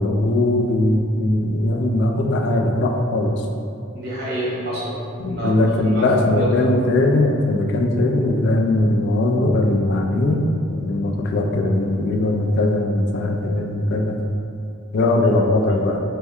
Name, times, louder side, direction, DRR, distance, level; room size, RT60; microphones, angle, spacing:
voice 1, 0.0-3.4 5.2-14.2 14.9-16.0, left 1 dB, 55° left, 1 dB, 0.3 m, -20 dB
voice 2, 3.9-5.0 5.3-5.6 5.8-6.7, equal, 50° right, -7 dB, 0.8 m, -27 dB
3.1 x 2.1 x 3.5 m, 2.5 s
head